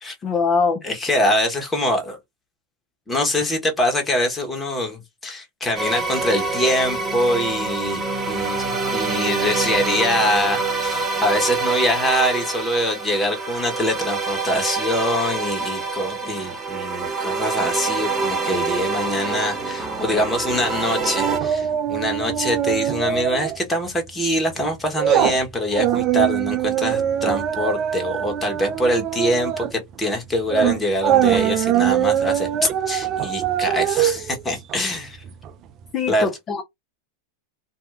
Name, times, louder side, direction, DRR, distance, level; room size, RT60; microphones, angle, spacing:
voice 1, 0.2-0.8 35.9-36.6, left 5 dB, 30° left, 0.6 m, -22 dB
voice 2, 0.8-2.2 3.1-32.5 32.9-35.2 36.1-36.3, equal, 15° left, 1.3 m, -24 dB
sound 1, 5.8-21.4, right 3 dB, 20° right, 1.1 m, -26 dB
sound 2, 21.2-23.6 23.9-24.1 24.5-35.5 35.8-35.9, right 11 dB, 40° right, 0.4 m, -22 dB
2.7 x 2.3 x 3.5 m
hypercardioid pair, 100°, 0 cm